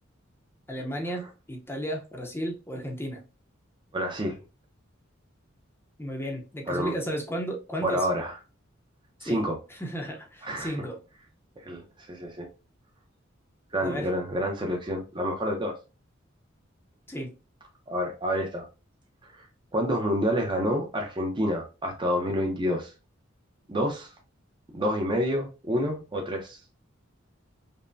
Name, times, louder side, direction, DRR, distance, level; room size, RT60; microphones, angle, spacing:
voice 1, 0.7-3.2 6.0-8.1 9.2-9.4 9.7-11.0 13.8-14.1 17.1-17.3, equal, 10° left, 0.6 m, -34 dB
voice 2, 3.9-4.4 6.7-6.9 7.8-8.3 9.2-9.6 10.4-10.8 11.6-11.8 12.1-12.5 13.7-15.8 17.9-18.7 19.2-19.5 19.7-22.9 23.7-24.1 24.7-26.6, equal, 25° right, 0.6 m, -28 dB
5.3 x 2.1 x 2.5 m
head